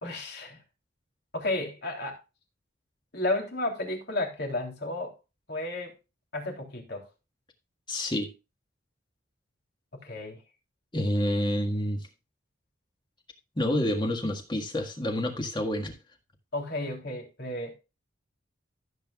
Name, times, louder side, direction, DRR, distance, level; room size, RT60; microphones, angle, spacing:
voice 1, 0.0-0.6 1.3-2.2 3.1-5.1 5.5-5.9 6.3-7.1 9.9-10.4 16.5-17.7, left 2 dB, 55° left, 3.2 m, -32 dB
voice 2, 7.9-8.3 10.9-12.1 13.6-16.0, left 1 dB, 25° left, 1.7 m, -28 dB
15.0 x 7.8 x 2.4 m
head